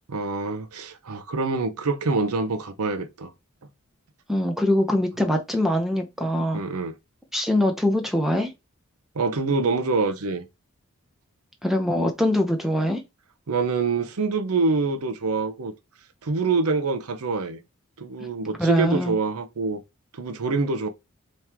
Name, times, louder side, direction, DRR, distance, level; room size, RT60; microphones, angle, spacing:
voice 1, 0.1-3.3 6.5-6.9 9.1-10.4 13.5-15.7 16.2-17.6 18.0-19.8 20.1-20.9, right 3 dB, 85° right, 0.7 m, -25 dB
voice 2, 4.3-6.6 7.3-8.5 11.6-13.0 18.2-18.3 18.6-19.2, left 1 dB, ahead, 0.7 m, -23 dB
3.5 x 3.1 x 4.4 m
head